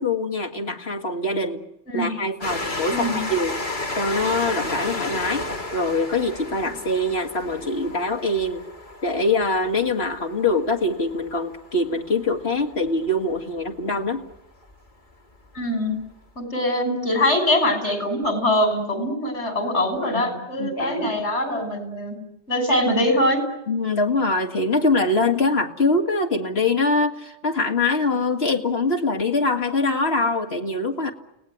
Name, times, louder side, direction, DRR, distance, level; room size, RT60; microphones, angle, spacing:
voice 1, 0.0-1.6 1.9-3.6 4.0-8.6 9.0-14.2 20.1-21.2 23.7-31.1, left 2 dB, 65° left, 3 dB, 2.6 m, -23 dB
Train, 2.4-13.6 14.3-14.4 14.6-14.7, left 2 dB, 45° left, 2.7 m, -33 dB
voice 2, 2.9-3.2 15.6-15.9 16.4-22.2 22.5-23.4, left 1 dB, 85° left, 7 dB, 6.8 m, -23 dB
30.0 x 18.5 x 9.6 m, 0.85 s
omnidirectional pair, 1.1 m